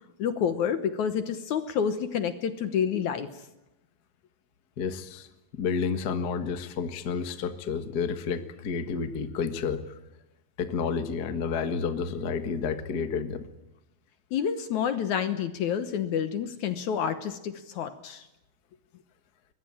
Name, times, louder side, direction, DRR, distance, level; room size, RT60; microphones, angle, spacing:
voice 1, 0.2-3.3 14.3-18.3, left 8 dB, 65° left, 10 dB, 2.1 m, -28 dB
voice 2, 4.8-5.3 5.5-9.9 10.6-13.4, left 5 dB, 50° left, 8 dB, 1.2 m, -30 dB
23.5 x 21.0 x 8.8 m, 0.94 s
omnidirectional pair, 4.2 m